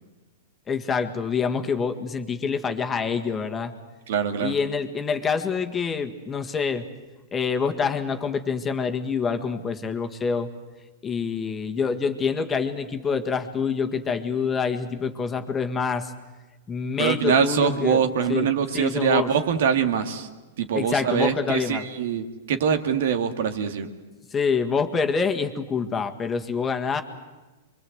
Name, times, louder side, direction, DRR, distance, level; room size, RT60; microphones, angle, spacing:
voice 1, 0.7-3.7 4.4-6.8 7.3-10.5 11.0-16.1 16.7-18.0 18.3-18.5 18.7-19.3 20.7-21.9 24.3-27.0, left 5 dB, 20° left, 6 dB, 1.8 m, -26 dB
voice 2, 4.1-4.5 17.0-20.3 20.6-23.9, right 7 dB, 65° right, 8 dB, 2.2 m, -23 dB
25.5 x 23.0 x 8.0 m, 1.2 s
hypercardioid pair, 115°, 0 cm